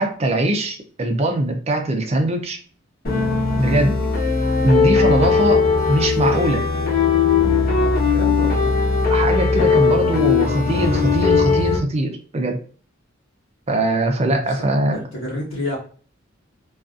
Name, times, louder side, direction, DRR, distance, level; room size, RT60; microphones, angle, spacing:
voice 1, 0.0-2.6 3.6-4.0 4.6-6.7 9.1-12.6 13.7-15.0, right 1 dB, 30° right, 4 dB, 0.4 m, -21 dB
sound 1, 3.0-11.8, left 5 dB, 45° left, 0.9 m, -18 dB
voice 2, 8.1-8.8 14.2-15.8, left 1 dB, 80° left, -5 dB, 1.0 m, -30 dB
2.5 x 2.4 x 2.4 m, 0.42 s
head